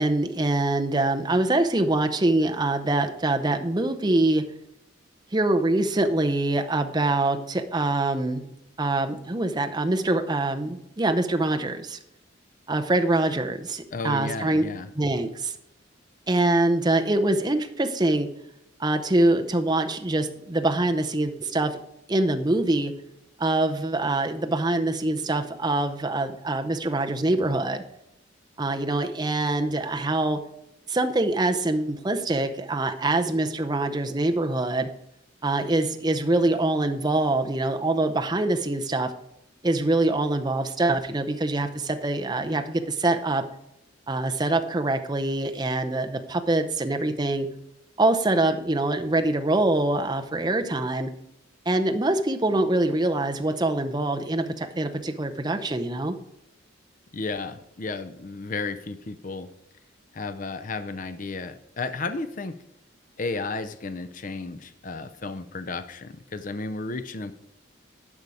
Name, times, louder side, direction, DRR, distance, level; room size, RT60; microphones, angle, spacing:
voice 1, 0.0-4.4 5.3-8.4 8.8-12.0 12.7-14.6 15.0-15.6 16.3-18.3 18.8-21.8 22.1-22.9 23.4-27.8 28.6-30.4 30.9-34.9 35.4-39.1 39.6-43.4 44.1-47.5 48.0-51.1 51.7-56.2, right 2 dB, 20° right, 6 dB, 0.6 m, -24 dB
voice 2, 13.9-14.9 57.1-59.5 60.1-62.6 63.2-67.3, left 3 dB, 40° left, 10 dB, 0.5 m, -33 dB
10.5 x 5.6 x 4.9 m, 0.82 s
head